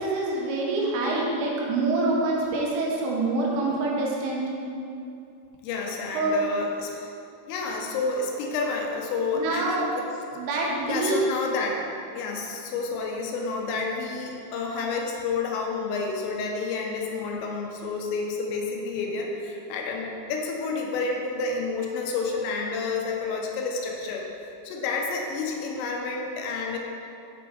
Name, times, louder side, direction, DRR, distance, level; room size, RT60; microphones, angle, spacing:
voice 1, 0.0-4.5 6.1-6.4 9.3-9.9 10.3-11.3, right 2 dB, 80° right, -2 dB, 3.3 m, -26 dB
voice 2, 5.6-7.1 7.5-10.1 10.9-11.8 12.1-24.3 24.6-26.8, left 4 dB, 85° left, 0 dB, 3.3 m, -30 dB
7.7 x 6.8 x 3.3 m, 2.6 s
omnidirectional pair, 5.9 m